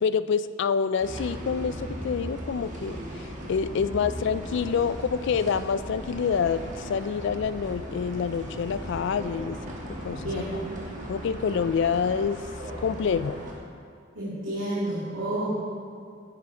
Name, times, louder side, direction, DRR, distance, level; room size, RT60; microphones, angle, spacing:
voice 1, 0.0-1.8 2.0-9.6 10.0-10.4 11.1-12.5 12.8-13.4, left 6 dB, 65° left, 14 dB, 0.3 m, -27 dB
sound 1, 1.0-13.5, equal, 40° right, 1.6 m, -37 dB
voice 2, 14.1-15.5, right 1 dB, 85° right, -9 dB, 2.1 m, -30 dB
10.0 x 9.9 x 3.7 m, 2.4 s
head